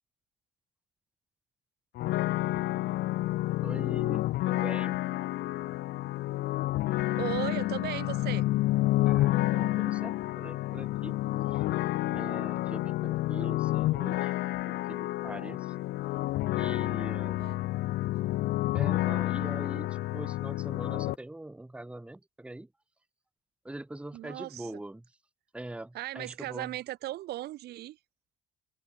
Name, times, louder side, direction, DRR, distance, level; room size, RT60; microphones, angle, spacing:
sound 1, 2.0-21.1, left 17 dB, 75° left, 1.2 m, -29 dB
voice 1, 3.6-5.0 9.0-11.1 11.5-11.6 12.1-14.3 14.6-15.7 16.5-17.5 18.7-22.7 23.6-25.0 25.5-26.7, right 1 dB, 5° right, 1.7 m, -43 dB
voice 2, 7.2-8.4 17.4-17.6 24.1-24.8 25.9-28.0, right 15 dB, 75° right, 2.1 m, -37 dB
cardioid pair, 110°, 17 cm